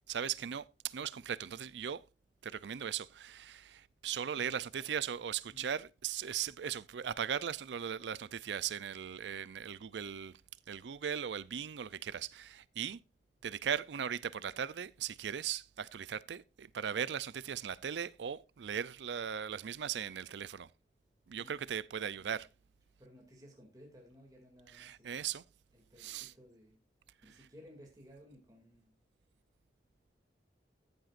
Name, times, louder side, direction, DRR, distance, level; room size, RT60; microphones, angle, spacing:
voice 1, 0.1-2.0 2.4-10.3 10.7-13.0 13.4-20.7 21.3-22.5 24.7-25.4 26.0-26.3, right 8 dB, 90° right, 0.5 m, -38 dB
voice 2, 4.3-4.9 5.5-5.7 21.4-21.8 23.0-25.2 25.7-26.8 27.2-28.9, equal, 20° right, 2.4 m, -58 dB
14.5 x 7.9 x 2.5 m
head